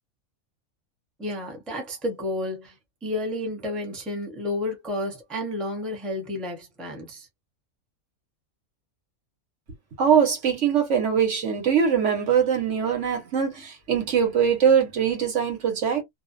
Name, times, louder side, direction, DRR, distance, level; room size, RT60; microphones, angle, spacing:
voice 1, 1.2-7.3, left 1 dB, ahead, 0.5 m, -31 dB
voice 2, 10.0-16.0, right 7 dB, 60° right, 1.1 m, -22 dB
2.5 x 2.1 x 2.4 m
omnidirectional pair, 1.5 m